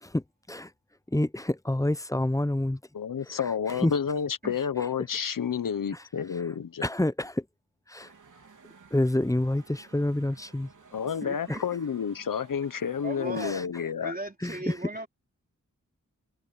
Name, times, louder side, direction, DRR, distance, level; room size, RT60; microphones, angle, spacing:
voice 1, 0.0-0.7 1.1-2.8 3.2-3.9 5.9-6.0 6.4-6.5 6.8-7.5 7.9-8.1 8.9-10.7 11.5-11.6 13.3-13.7 14.4-14.9, left 1 dB, 10° left, 0.7 m, -28 dB
voice 2, 2.9-6.8 10.9-14.2, left 7 dB, 80° left, 1.2 m, -30 dB
sound 1, 8.0-13.4, right 5 dB, 70° right, 3.7 m, -55 dB
voice 3, 11.2-11.6 13.0-13.6 14.0-15.1, right 2 dB, 25° right, 3.6 m, -37 dB
cardioid pair, 60°, 32 cm